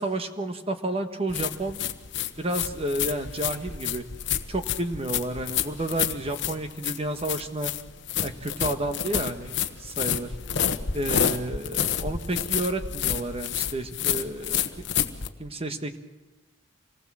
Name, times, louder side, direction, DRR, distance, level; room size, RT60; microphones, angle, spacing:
voice 1, 0.0-1.8 2.4-4.0 4.5-7.7 8.2-10.3 10.9-14.9 15.4-16.0, right 1 dB, 30° right, 7 dB, 1.4 m, -31 dB
sound 1, 1.3-15.3, left 8 dB, 60° left, 1.1 m, -29 dB
26.5 x 19.0 x 7.6 m, 1.1 s
head